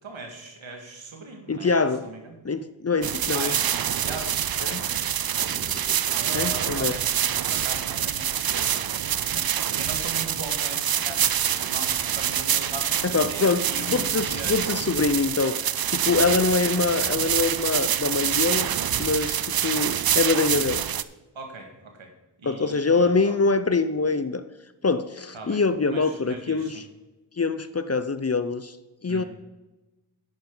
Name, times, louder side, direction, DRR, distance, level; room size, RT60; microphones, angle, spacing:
voice 1, 0.0-2.4 3.0-5.1 6.1-8.8 9.2-14.8 16.2-16.5 21.3-22.1 22.4-23.4 25.3-26.8 29.1-29.2, right 2 dB, 75° right, 3 dB, 2.1 m, -40 dB
voice 2, 1.5-2.1 2.4-3.5 4.6-4.9 6.3-6.9 13.0-15.6 15.9-20.8 22.4-24.4 24.8-26.8 27.4-28.8 29.0-29.2, left 4 dB, 30° left, 12 dB, 0.7 m, -24 dB
sound 1, 3.0-21.0, right 10 dB, 50° right, 0.5 m, -26 dB
sound 2, 3.8-8.4 9.2-9.4 9.8-13.0, right 1 dB, 30° right, 4.0 m, -46 dB
10.5 x 9.1 x 3.9 m, 1.1 s
cardioid pair, 40°, 47 cm